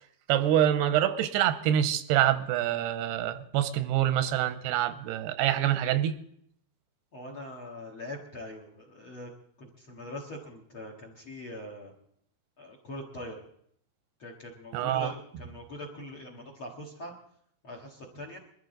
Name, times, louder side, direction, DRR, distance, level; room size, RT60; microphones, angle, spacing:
voice 1, 0.3-6.1 14.7-15.1, right 11 dB, 85° right, 10 dB, 2.8 m, -26 dB
voice 2, 7.1-9.3 9.6-11.9 12.6-13.4 14.2-17.1 17.6-18.4, left 1 dB, 50° left, 2 dB, 1.7 m, -42 dB
22.0 x 13.5 x 3.9 m, 0.69 s
omnidirectional pair, 4.7 m